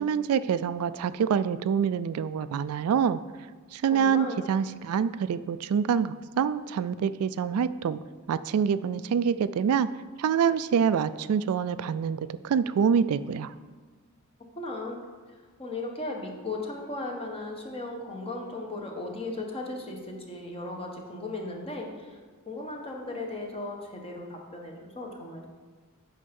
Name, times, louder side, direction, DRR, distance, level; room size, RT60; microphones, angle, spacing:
voice 1, 0.0-3.2 3.7-8.0 8.3-9.9 10.2-13.5, right 7 dB, 75° right, 15 dB, 0.3 m, -26 dB
voice 2, 3.9-4.4 14.5-15.0 15.6-22.2 22.5-25.5, left 2 dB, 25° left, 1 dB, 1.2 m, -36 dB
8.5 x 5.5 x 5.3 m, 1.4 s
head